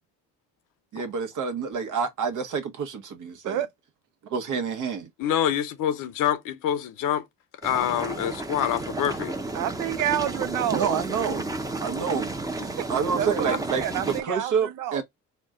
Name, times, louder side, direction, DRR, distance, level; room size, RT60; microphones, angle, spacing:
voice 1, 0.9-3.6 4.3-5.1 10.7-11.5 11.8-12.4 12.9-15.0, right 6 dB, 65° right, 1.1 m, -28 dB
voice 2, 5.2-7.3 7.6-9.3, left 10 dB, 80° left, 0.7 m, -26 dB
sound 1, 7.6-14.2, right 2 dB, 10° right, 0.6 m, -32 dB
voice 3, 9.5-10.9 12.8-12.9 13.2-15.0, right 11 dB, 85° right, 0.6 m, -29 dB
4.2 x 2.2 x 3.6 m
cardioid pair, 95°, 32 cm